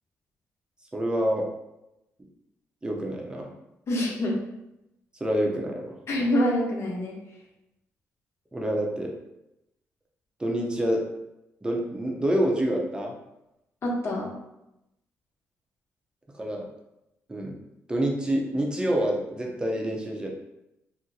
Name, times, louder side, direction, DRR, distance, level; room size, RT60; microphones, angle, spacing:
voice 1, 0.9-1.5 2.8-3.5 5.2-5.9 8.5-9.1 10.4-11.0 11.6-13.1 16.4-16.7 17.3-17.5 17.9-20.3, right 1 dB, 15° right, -1 dB, 0.7 m, -27 dB
voice 2, 3.9-4.4 6.1-7.1 13.8-14.3, left 1 dB, 50° left, -2 dB, 0.9 m, -25 dB
2.8 x 2.1 x 3.8 m, 0.89 s
cardioid pair, 80°, 5 cm